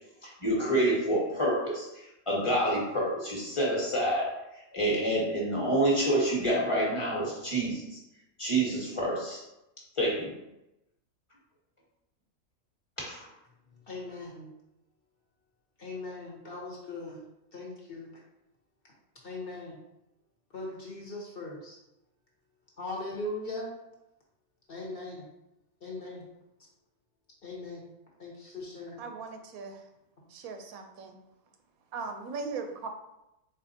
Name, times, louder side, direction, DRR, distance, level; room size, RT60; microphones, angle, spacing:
voice 1, 0.2-1.8 2.3-4.3 4.7-8.0 8.4-9.4 10.0-10.3 13.0-13.3, right 1 dB, 25° left, -5 dB, 1.1 m, -27 dB
voice 2, 13.8-14.5 15.8-17.2 17.5-18.1 19.2-19.8 20.5-21.8 22.8-23.7 24.7-25.3 25.8-26.3 27.4-27.9 28.2-29.0, left 2 dB, 45° left, -3 dB, 1.0 m, -39 dB
voice 3, 29.0-29.8 30.3-31.1 31.9-32.9, right 4 dB, 85° right, 5 dB, 1.1 m, -38 dB
4.2 x 4.0 x 2.7 m, 0.89 s
omnidirectional pair, 1.5 m